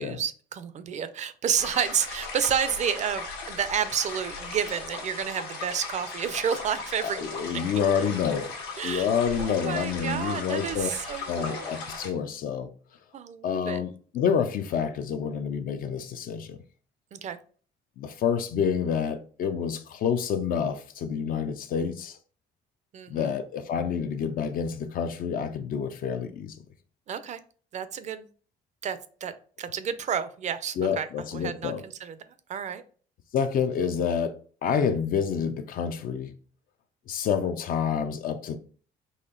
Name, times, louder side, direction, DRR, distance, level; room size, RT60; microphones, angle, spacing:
voice 1, 0.0-7.8 8.8-9.1 9.4-11.7 13.1-13.8 17.1-17.4 22.9-23.3 27.1-27.4 27.7-28.3 28.8-31.1 31.3-32.2 32.5-32.8, right 8 dB, 45° right, 0.4 m, -30 dB
sound 1, 1.6-12.1, left 3 dB, 85° left, 1.5 m, -38 dB
voice 2, 7.0-8.5 8.8-10.9 11.3-12.7 13.4-16.6 18.0-22.2 23.1-26.6 30.8-31.8 33.3-34.4 34.6-36.3 37.1-38.6, left 7 dB, 55° left, 0.5 m, -28 dB
4.3 x 2.8 x 3.7 m
cardioid pair, 110°, 17 cm